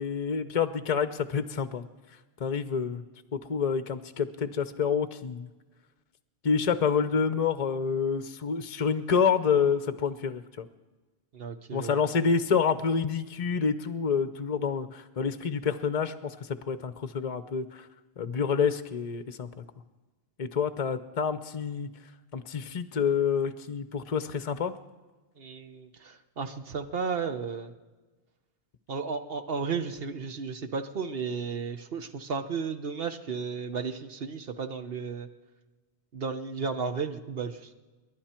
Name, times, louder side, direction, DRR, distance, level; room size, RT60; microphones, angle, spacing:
voice 1, 0.0-1.8 2.4-3.0 3.3-5.5 6.4-10.7 11.7-17.9 18.2-19.5 20.4-21.9 22.3-24.7, left 6 dB, 45° left, 12 dB, 0.7 m, -28 dB
voice 2, 11.3-12.0 25.4-27.7 28.9-35.3 36.1-37.7, right 5 dB, 65° right, 8 dB, 1.1 m, -34 dB
29.0 x 11.5 x 4.4 m, 1.3 s
omnidirectional pair, 1.1 m